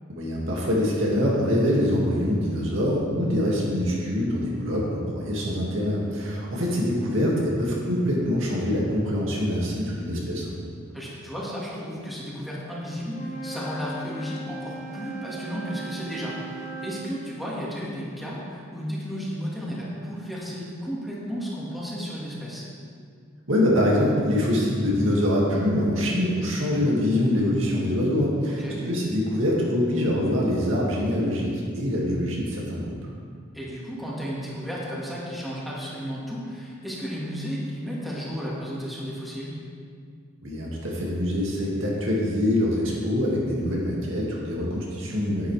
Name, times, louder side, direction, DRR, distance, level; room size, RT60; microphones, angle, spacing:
voice 1, 0.2-10.5 23.5-32.9 40.4-45.5, left 1 dB, 80° right, -4 dB, 2.2 m, -24 dB
voice 2, 10.9-22.7 28.5-28.8 33.5-39.6, equal, ahead, -7 dB, 1.9 m, -33 dB
Wind instrument woodwind instrument, 13.1-17.0, right 2 dB, 35° left, 1.2 m, -37 dB
10.0 x 9.4 x 3.4 m, 2.1 s
head